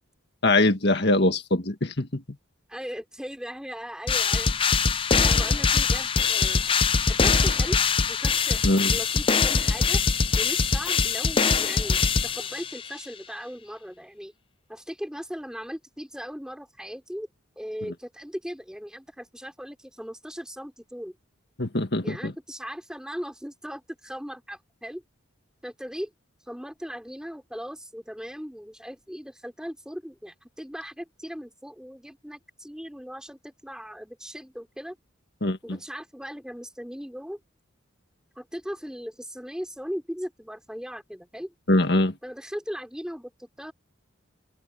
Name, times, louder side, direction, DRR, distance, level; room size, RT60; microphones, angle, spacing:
voice 1, 0.4-2.2 8.6-9.0 21.6-22.3 35.4-35.8 41.7-42.1, left 2 dB, 55° left, 1.9 m, -22 dB
voice 2, 2.7-4.5 5.2-7.8 8.1-8.6 8.9-10.0 10.4-14.3 14.7-17.3 17.5-21.1 22.0-25.0 25.6-26.1 26.5-35.0 35.6-37.4 38.3-41.5 42.2-43.7, equal, 5° right, 5.0 m, -38 dB
sound 1, 4.1-12.9, left 5 dB, 25° left, 0.5 m, -23 dB
open air
head